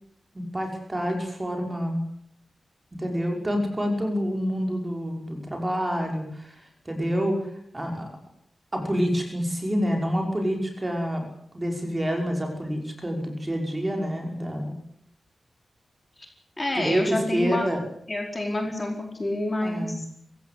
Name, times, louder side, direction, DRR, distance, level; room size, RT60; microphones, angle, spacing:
voice 1, 0.3-2.0 2.9-7.4 7.7-8.1 8.7-11.2 11.5-14.7 16.7-17.8 19.6-20.0, equal, 15° right, 2 dB, 5.5 m, -27 dB
voice 2, 16.6-17.7 18.1-18.9 19.2-19.9, left 1 dB, 20° left, 2 dB, 4.7 m, -27 dB
25.0 x 16.5 x 8.5 m, 0.67 s
wide cardioid pair, 165°, 0 cm